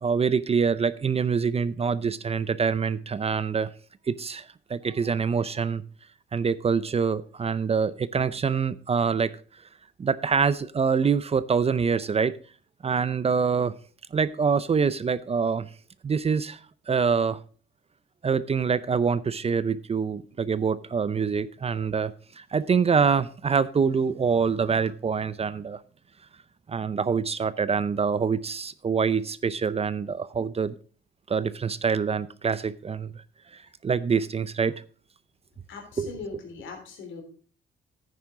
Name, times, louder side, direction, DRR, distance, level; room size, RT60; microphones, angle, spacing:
voice 1, 0.0-3.7 4.1-5.8 6.3-9.3 10.0-12.4 12.8-13.7 14.1-15.7 16.0-16.6 16.9-17.4 18.2-25.8 26.7-30.7 31.3-33.1 33.5-34.7 36.0-36.1, right 6 dB, 30° right, 17 dB, 0.5 m, -25 dB
voice 2, 35.7-37.2, left 4 dB, 75° left, 4 dB, 3.5 m, -40 dB
10.5 x 9.4 x 3.7 m, 0.41 s
cardioid pair, 90°, 20 cm